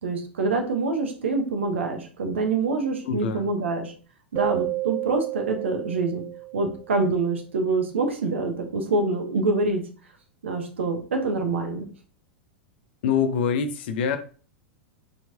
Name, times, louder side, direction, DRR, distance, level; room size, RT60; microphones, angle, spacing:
voice 1, 0.0-3.9 4.3-6.2 6.5-9.8 10.4-11.9, right 3 dB, 65° right, 4 dB, 1.0 m, -26 dB
voice 2, 3.0-3.5 13.0-14.2, left 6 dB, 50° left, 9 dB, 0.6 m, -25 dB
Keyboard (musical), 4.3-7.1, right 17 dB, 30° right, 0.3 m, -31 dB
4.5 x 3.3 x 2.8 m, 0.39 s
figure-of-eight pair, 95°, 7 cm